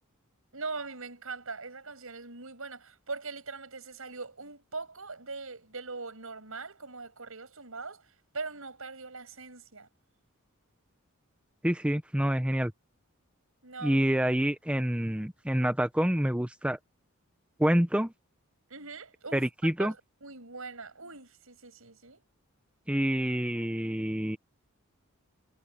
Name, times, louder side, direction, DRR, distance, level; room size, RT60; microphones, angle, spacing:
voice 1, 0.5-9.9 13.6-14.0 18.7-19.5 19.8-20.0 20.2-22.2, right 4 dB, 75° right, 6.9 m, -41 dB
voice 2, 11.6-12.7 13.8-16.8 17.6-18.1 19.3-19.9 22.9-24.4, equal, 5° right, 0.8 m, -27 dB
head